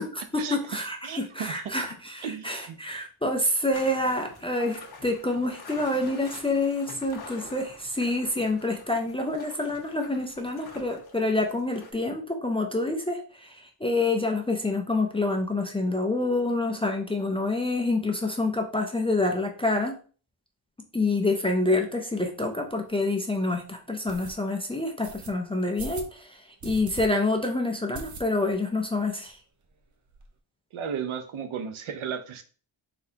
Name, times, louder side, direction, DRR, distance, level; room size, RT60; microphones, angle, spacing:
voice 1, 0.0-19.9 20.9-29.4, left 2 dB, 15° left, 3 dB, 0.3 m, -27 dB
voice 2, 1.0-1.7 2.2-2.8 30.7-32.4, right 7 dB, 75° right, 8 dB, 0.7 m, -34 dB
sound 1, 3.7-11.9, left 4 dB, 50° left, 0.9 m, -46 dB
sound 2, 22.7-22.8 23.2-23.3 24.1-24.3 25.0-25.3 25.8-26.1 26.6-27.1 27.4-27.5 27.9-28.6 28.9-29.0 29.3-29.4 29.6-30.3, right 4 dB, 40° right, 0.6 m, -40 dB
4.2 x 4.1 x 2.7 m, 0.40 s
wide cardioid pair, 170°, 49 cm